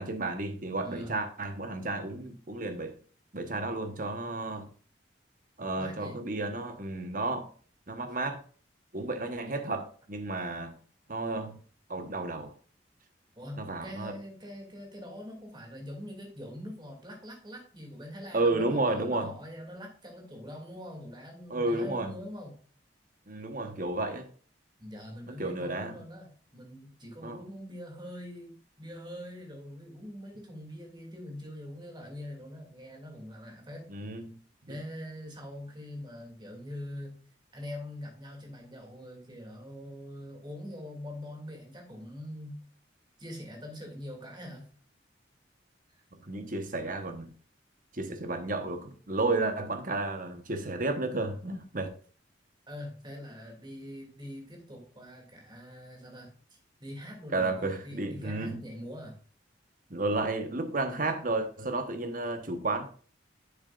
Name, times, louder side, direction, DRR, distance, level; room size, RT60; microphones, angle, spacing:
voice 1, 0.0-2.9 3.3-4.7 5.6-7.5 7.9-8.4 8.9-10.7 11.1-11.6 11.9-12.5 13.6-14.2 18.3-19.3 21.5-22.1 23.3-24.3 25.3-26.0 27.2-27.4 33.9-34.4 34.7-34.8 46.2-47.3 47.9-51.9 57.3-58.6 59.9-62.9, right 2 dB, 45° right, 1.2 m, -32 dB
voice 2, 0.8-1.1 4.5-4.6 5.8-6.2 13.4-22.6 23.6-23.8 24.8-33.9 34.7-37.2 37.5-42.6 43.2-44.7 45.9-46.0 52.7-59.1, left 1 dB, 25° right, 2.7 m, -43 dB
10.5 x 7.2 x 2.5 m
head